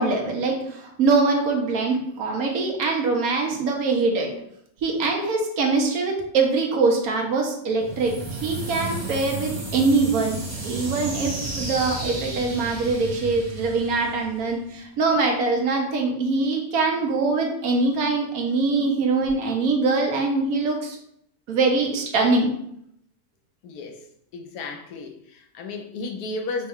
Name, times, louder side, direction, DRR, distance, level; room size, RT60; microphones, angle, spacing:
voice 1, 0.0-4.3 4.8-10.4 10.6-21.0 21.5-22.5, right 3 dB, 70° right, 2 dB, 1.2 m, -23 dB
sound 1, 7.8-14.7, right 2 dB, 30° right, 1.2 m, -33 dB
voice 2, 23.6-24.0 24.3-26.7, left 3 dB, 75° left, 4 dB, 1.0 m, -33 dB
5.1 x 2.2 x 3.5 m, 0.72 s
omnidirectional pair, 1.6 m